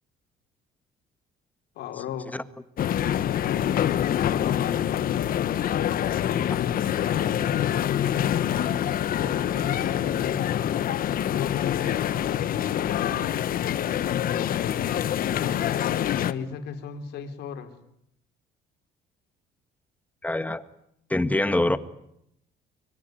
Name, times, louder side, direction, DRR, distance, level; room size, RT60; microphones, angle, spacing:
voice 1, 1.8-2.3 3.4-5.3 6.1-10.4 11.2-13.3 14.5-15.0 16.1-17.7, left 8 dB, 80° left, 7 dB, 4.1 m, -36 dB
sound 1, 2.8-16.3, left 10 dB, 60° left, 1.5 m, -26 dB
voice 2, 20.2-20.6 21.1-21.8, left 1 dB, 10° left, 12 dB, 1.7 m, -24 dB
24.5 x 23.5 x 9.5 m, 0.75 s
cardioid pair, 110°, 17 cm